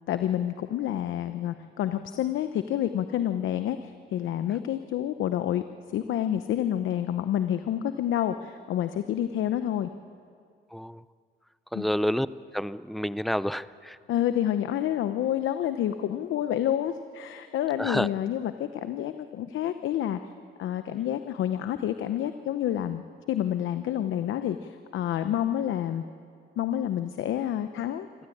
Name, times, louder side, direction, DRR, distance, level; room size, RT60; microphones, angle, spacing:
voice 1, 0.1-5.6 5.9-9.9 11.7-11.9 14.1-20.2 20.6-23.0 23.3-26.0 26.6-28.1, left 11 dB, 80° left, 10 dB, 0.8 m, -28 dB
voice 2, 10.7-11.0 11.7-12.3 12.5-14.0 17.8-18.1, equal, ahead, 16 dB, 0.5 m, -28 dB
26.0 x 16.0 x 8.6 m, 2.2 s
cardioid pair, 90°, 20 cm